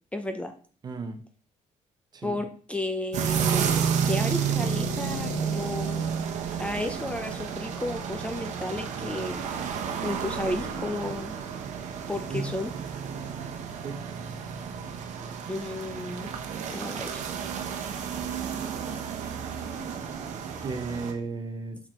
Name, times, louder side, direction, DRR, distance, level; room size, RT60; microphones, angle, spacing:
voice 1, 0.1-0.5 2.2-3.7 4.1-6.1 6.6-9.4 10.0-11.3 12.1-12.7 15.5-16.3 16.7-17.1 21.1-21.6, left 1 dB, 10° left, 7 dB, 0.6 m, -33 dB
voice 2, 0.8-1.2 2.1-2.3 12.3-12.5 13.8-14.0 20.4-21.8, right 4 dB, 30° right, 8 dB, 0.8 m, -34 dB
sound 1, 3.1-21.1, right 7 dB, 65° right, 1.0 m, -31 dB
6.0 x 4.9 x 4.4 m, 0.41 s
cardioid pair, 145°, 13 cm